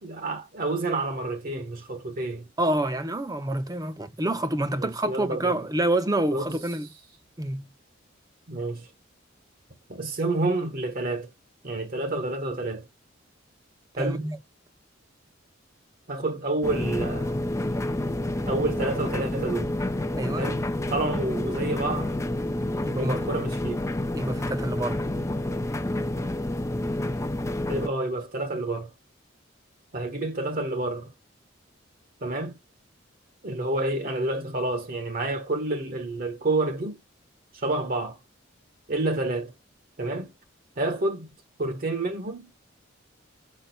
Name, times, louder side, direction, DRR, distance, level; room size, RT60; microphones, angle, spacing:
voice 1, 0.0-2.5 4.8-5.6 6.3-6.6 8.5-8.9 9.9-11.3 11.6-12.9 14.0-14.3 16.1-17.5 18.5-19.7 20.4-20.6 20.9-22.1 23.0-23.8 27.7-28.9 29.9-31.1 32.2-32.6 33.4-37.0 37.5-38.2 38.9-39.5 40.0-40.3 40.8-41.3 41.6-42.5, right 2 dB, 45° right, 1.0 m, -29 dB
voice 2, 2.6-6.9 7.4-7.7 14.0-14.4 20.1-20.5 22.8-23.2 24.1-25.0, right 1 dB, 20° right, 0.7 m, -27 dB
sound 1, 16.6-27.9, left 1 dB, 15° left, 0.4 m, -29 dB
5.2 x 4.4 x 5.3 m
head